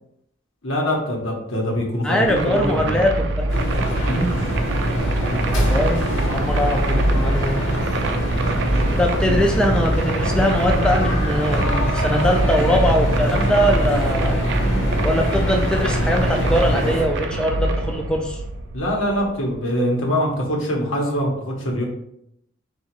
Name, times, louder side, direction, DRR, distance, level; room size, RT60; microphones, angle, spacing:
voice 1, 0.6-3.0 4.0-4.4 18.7-21.8, equal, 85° left, -1 dB, 1.3 m, -23 dB
voice 2, 2.0-3.6 5.5-7.6 8.9-14.4 15.0-18.4, equal, 5° left, 1 dB, 0.3 m, -22 dB
sound 1, 2.2-19.6, right 2 dB, 60° right, 0.4 m, -25 dB
sound 2, 3.5-17.1, equal, 60° left, 1.2 m, -23 dB
3.8 x 2.7 x 4.5 m, 0.76 s
head